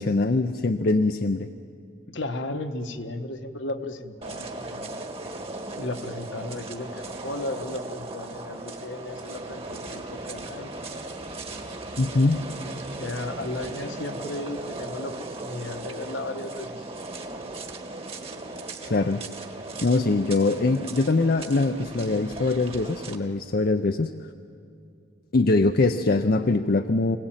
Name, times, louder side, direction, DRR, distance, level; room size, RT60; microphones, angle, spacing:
voice 1, 0.0-1.5 12.0-12.5 18.8-19.2 19.8-24.1 25.3-27.2, left 3 dB, 50° left, 7 dB, 0.6 m, -23 dB
voice 2, 2.1-4.9 5.8-10.7 13.0-16.8, left 2 dB, 70° left, 7 dB, 1.3 m, -35 dB
sound 1, 4.2-23.1, right 2 dB, 30° right, 1.5 m, -37 dB
25.5 x 17.5 x 9.0 m, 2.4 s
head